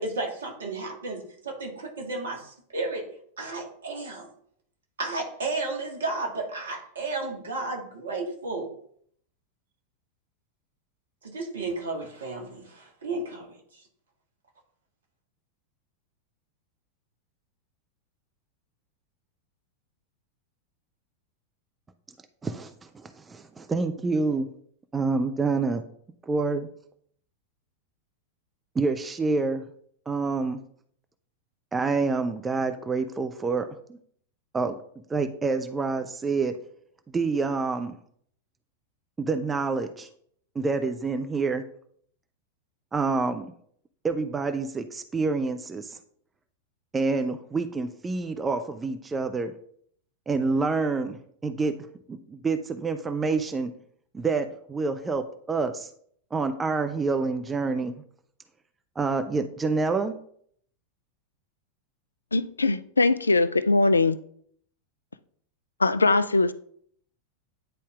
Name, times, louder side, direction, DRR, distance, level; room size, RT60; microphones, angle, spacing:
voice 1, 0.0-3.1 3.4-4.3 5.0-8.7 11.2-13.5 13.7-13.8, right 3 dB, 65° right, 1 dB, 1.5 m, -33 dB
voice 2, 22.4-24.5 24.9-25.8 26.3-26.7 28.8-29.6 30.1-30.6 31.7-34.0 34.5-34.8 35.1-36.6 37.1-38.0 39.2-40.1 40.6-41.6 42.9-43.5 44.0-46.0 46.9-49.5 50.3-51.2 51.4-51.7 52.1-53.7 54.1-55.9 56.3-58.0 59.0-60.2, right 4 dB, 15° right, 9 dB, 0.4 m, -27 dB
voice 3, 62.3-64.2 65.8-66.5, left 3 dB, 75° left, 14 dB, 0.3 m, -21 dB
10.0 x 4.2 x 2.4 m, 0.63 s
figure-of-eight pair, 90°, 0 cm